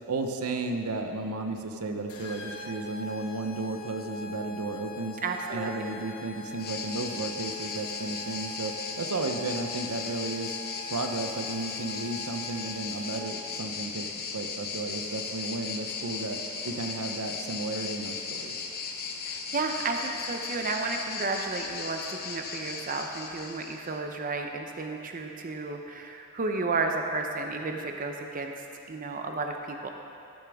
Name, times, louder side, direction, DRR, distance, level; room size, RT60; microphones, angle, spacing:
voice 1, 0.1-5.2 5.5-10.6 10.9-14.1 14.3-18.6, right 2 dB, 90° right, 5 dB, 0.7 m, -33 dB
sound 1, 2.1-13.5, left 3 dB, 75° left, 1.1 m, -43 dB
voice 2, 5.2-5.9 19.3-28.5 28.9-29.9, right 3 dB, 40° right, 3 dB, 0.6 m, -32 dB
sound 2, 6.6-24.0, left 5 dB, 45° left, 0.8 m, -37 dB
15.0 x 7.1 x 3.5 m, 2.7 s
head